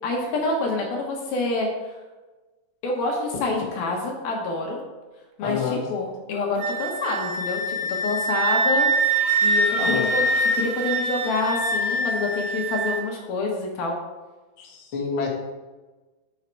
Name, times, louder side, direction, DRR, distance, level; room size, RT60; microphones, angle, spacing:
voice 1, 0.0-1.9 2.8-4.8 5.4-7.8 8.0-8.9 9.4-10.2 10.5-14.0, left 3 dB, 70° left, -1 dB, 2.7 m, -27 dB
voice 2, 5.4-5.8 9.8-10.1 14.6-15.3, left 5 dB, 50° left, -3 dB, 1.6 m, -28 dB
Wind instrument woodwind instrument, 6.6-13.0, right 2 dB, 85° right, 3.1 m, -24 dB
9.4 x 5.6 x 4.5 m, 1.2 s
omnidirectional pair, 5.0 m